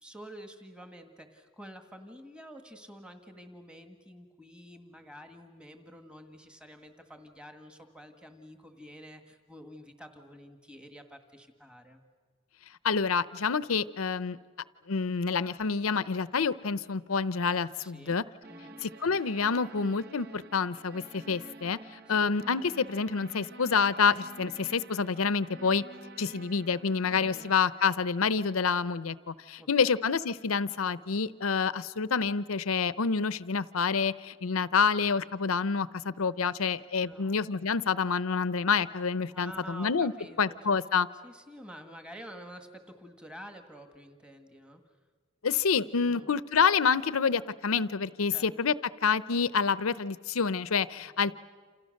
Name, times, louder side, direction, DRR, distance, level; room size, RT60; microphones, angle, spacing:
voice 1, 0.0-12.0 17.8-18.2 18.5-18.8 22.1-22.3 27.3-27.5 29.6-30.0 37.0-37.7 39.3-40.8 41.2-44.8 46.1-46.3 48.3-48.5 51.0-51.3, equal, 5° right, 6 dB, 1.6 m, -49 dB
voice 2, 12.8-14.4 14.9-18.2 18.8-21.8 22.1-25.8 26.2-40.1 40.4-41.1 45.4-48.8 49.0-51.3, left 5 dB, 85° left, 16 dB, 0.7 m, -28 dB
sound 1, 18.4-27.5, right 2 dB, 50° right, 0.9 m, -49 dB
28.5 x 28.0 x 6.5 m, 1.5 s
head